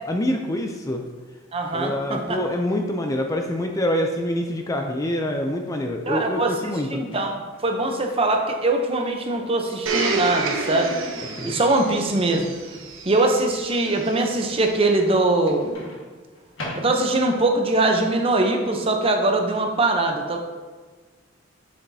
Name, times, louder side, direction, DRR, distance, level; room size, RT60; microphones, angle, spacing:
voice 1, 0.1-1.0 1.7-7.0 11.4-11.5, left 1 dB, 15° left, 3 dB, 0.4 m, -26 dB
voice 2, 1.5-2.4 6.1-6.5 6.9-10.9 11.4-12.5 13.1-15.8 16.7-20.4, right 2 dB, 30° right, 3 dB, 0.7 m, -22 dB
Microwave oven, 7.0-7.7 9.7-9.9 15.7-17.4, left 1 dB, 70° left, 1.6 m, -38 dB
Domestic sounds home sounds, 9.9-14.7 15.5-15.6, right 3 dB, 75° right, 0.9 m, -30 dB
7.7 x 7.0 x 2.7 m, 1.4 s
head